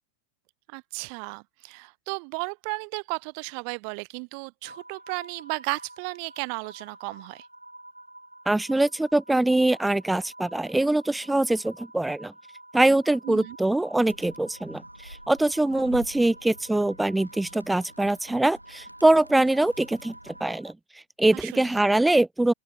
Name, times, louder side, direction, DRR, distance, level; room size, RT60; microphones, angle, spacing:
voice 1, 0.7-7.5 13.2-13.6 21.3-21.8, right 40 dB or more, 45° right, 0.9 m, -34 dB
sound 1, 4.6-20.7, right 1 dB, 85° right, 1.6 m, -49 dB
voice 2, 8.5-12.3 12.7-22.5, right 2 dB, 5° right, 0.3 m, -23 dB
Animal, 14.0-20.5, equal, 90° left, 1.8 m, -48 dB
open air
figure-of-eight pair, 90°, 0 cm